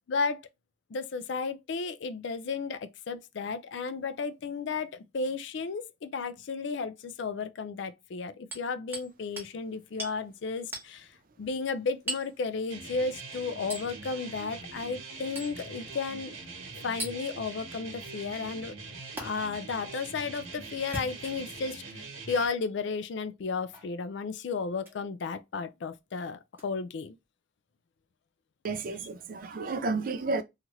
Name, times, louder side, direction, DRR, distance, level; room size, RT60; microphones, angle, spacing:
voice 1, 0.1-0.5 0.9-11.1 11.4-16.4 16.8-18.7 19.2-27.2 29.0-29.1, left 4 dB, 60° left, 0.4 m, -33 dB
Hammer, 8.5-9.1 9.4-9.5 10.0-10.2 10.7-10.9 12.1-12.3 13.7-13.9 15.4-15.6 17.0-17.2 19.2-19.3 20.8-21.6 22.3-22.5 23.7-23.9 24.8-25.0 26.5-26.6, right 2 dB, 10° right, 1.0 m, -38 dB
sound 1, 12.7-22.5, right 4 dB, 85° right, 1.1 m, -43 dB
voice 2, 28.6-30.4, right 3 dB, 45° right, 0.4 m, -31 dB
2.9 x 2.4 x 2.9 m
head